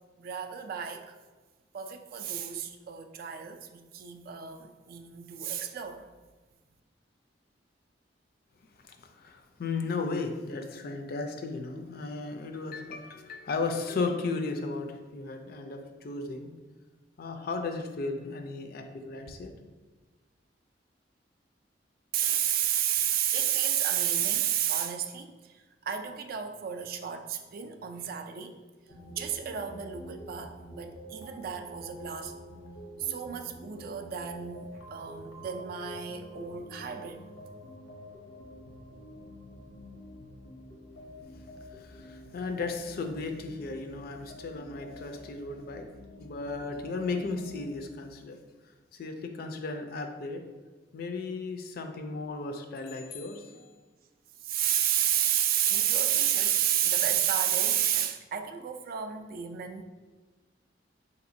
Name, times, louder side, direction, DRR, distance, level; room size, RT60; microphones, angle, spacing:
voice 1, 0.2-1.2 1.7-6.0 22.1-28.6 29.1-32.3 33.0-37.2 54.4-59.8, right 10 dB, 55° right, 7 dB, 0.3 m, -31 dB
voice 2, 8.9-16.5 17.2-19.5 41.6-45.9 46.2-48.4 48.9-50.4 50.9-53.7, left 3 dB, 55° left, 5 dB, 0.4 m, -35 dB
sound 1, 28.9-47.8, equal, 85° left, 0.7 m, -48 dB
4.1 x 2.9 x 2.5 m, 1.3 s
head